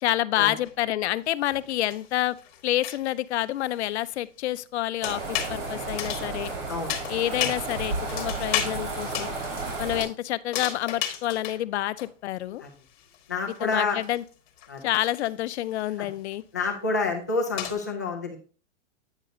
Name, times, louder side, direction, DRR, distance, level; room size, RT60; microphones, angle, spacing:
voice 1, 0.0-2.4 2.6-6.5 7.1-9.3 9.8-12.6 13.6-14.2 14.8-16.4, left 14 dB, 65° left, 15 dB, 0.5 m, -28 dB
sound 1, 0.7-0.8 1.5-3.1 5.0-5.5 6.0-6.5 6.9-7.6 8.1-8.7 9.1-9.3 10.5-11.6 12.0-12.1 12.4-12.5 12.9-16.0 16.3-16.4 17.1-17.2 17.6-17.7, left 10 dB, 40° left, 1.3 m, -33 dB
sound 2, 5.0-10.0, right 3 dB, 75° right, 3.9 m, -32 dB
voice 2, 13.3-14.0 14.7-14.8 16.5-18.4, left 3 dB, 15° left, 0 dB, 0.3 m, -28 dB
8.9 x 6.5 x 2.6 m, 0.40 s
supercardioid pair, 180°, 36 cm